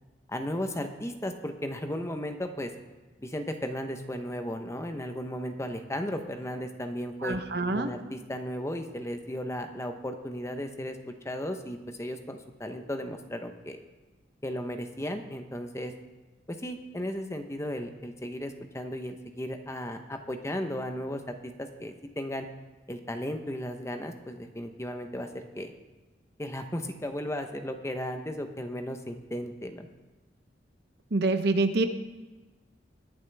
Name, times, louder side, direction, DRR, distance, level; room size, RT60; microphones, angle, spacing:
voice 1, 0.3-2.7 3.2-7.4 7.7-11.0 11.2-13.8 14.4-15.9 16.6-22.5 22.9-25.7 26.4-29.9, equal, 15° left, 6 dB, 0.8 m, -35 dB
voice 2, 7.2-7.9 31.1-31.8, right 2 dB, 60° right, 8 dB, 0.8 m, -26 dB
20.5 x 7.4 x 3.4 m, 1.2 s
head